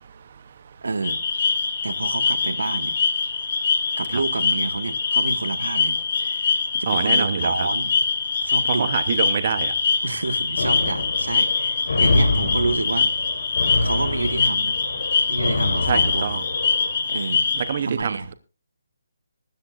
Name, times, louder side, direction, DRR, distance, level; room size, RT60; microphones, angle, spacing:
voice 1, 0.8-1.2 1.8-3.0 4.0-7.9 8.4-8.9 10.0-13.1 13.8-14.8 15.3-16.4 17.1-17.5 17.8-18.3, right 3 dB, 85° right, 1.5 m, -28 dB
sound 1, 1.0-17.8, left 5 dB, 35° left, 2.3 m, -24 dB
voice 2, 6.9-7.7 8.7-9.7 13.6-13.9 15.2-15.4 15.9-16.4 16.8-17.1 17.5-18.3, right 7 dB, 35° right, 0.7 m, -26 dB
sound 2, 10.6-17.0, left 2 dB, 70° left, 3.9 m, -26 dB
18.5 x 13.0 x 2.4 m
hypercardioid pair, 175°, 0 cm